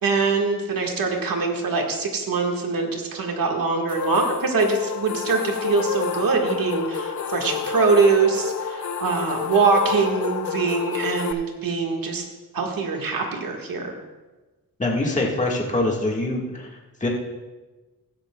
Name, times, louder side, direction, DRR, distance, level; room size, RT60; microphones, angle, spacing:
voice 1, 0.0-12.2 12.5-13.9, right 4 dB, 75° right, 2 dB, 1.7 m, -23 dB
sound 1, 3.9-11.3, left 6 dB, 60° left, 0.6 m, -29 dB
voice 2, 14.8-16.7 17.0-17.1, left 2 dB, 20° left, -2 dB, 1.7 m, -24 dB
15.5 x 11.5 x 2.3 m, 1.2 s
wide cardioid pair, 110°, 34 cm